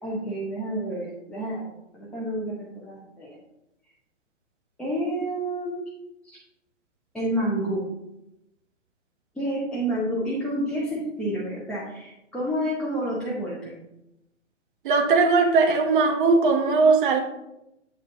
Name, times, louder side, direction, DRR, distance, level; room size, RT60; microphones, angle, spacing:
voice 1, 0.0-3.4 4.8-5.8 6.2-6.4 7.1-7.8 9.3-13.7, right 1 dB, ahead, -7 dB, 0.8 m, -29 dB
voice 2, 14.8-17.2, right 4 dB, 45° right, 3 dB, 1.2 m, -19 dB
8.1 x 4.1 x 3.9 m, 0.89 s
figure-of-eight pair, 120°, 37 cm